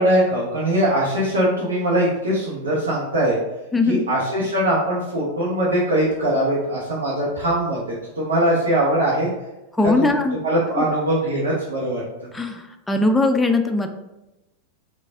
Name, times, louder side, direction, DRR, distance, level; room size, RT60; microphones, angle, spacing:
voice 1, 0.0-3.4 3.9-7.8 8.1-9.3 10.0-12.0, right 1 dB, 70° right, -7 dB, 1.0 m, -21 dB
voice 2, 9.8-10.4 10.8-10.9 12.3-13.9, left 2 dB, 10° left, 5 dB, 0.4 m, -20 dB
4.0 x 2.5 x 3.3 m, 0.99 s
figure-of-eight pair, 90°, 0 cm